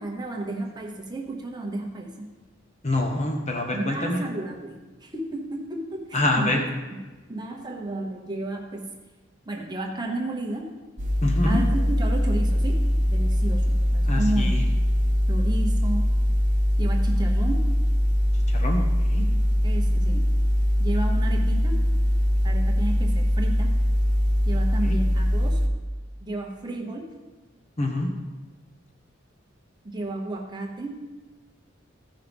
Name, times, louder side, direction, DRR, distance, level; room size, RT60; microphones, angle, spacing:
voice 1, 0.0-2.3 3.7-6.6 6.9-7.0 7.3-8.9 9.4-10.7 11.4-14.5 15.3-16.1 16.8-17.7 19.6-20.3 20.8-21.8 22.4-23.8 24.4-25.6 26.2-27.1 29.8-31.0, right 2 dB, 20° right, 0 dB, 1.1 m, -32 dB
voice 2, 2.8-4.2 6.1-6.6 11.2-11.6 14.0-14.6 18.5-19.3 24.8-25.0 27.8-28.1, left 1 dB, 35° left, 2 dB, 1.0 m, -26 dB
sound 1, 11.0-25.7, equal, 40° right, 0.8 m, -22 dB
15.5 x 5.6 x 3.5 m, 1.2 s
head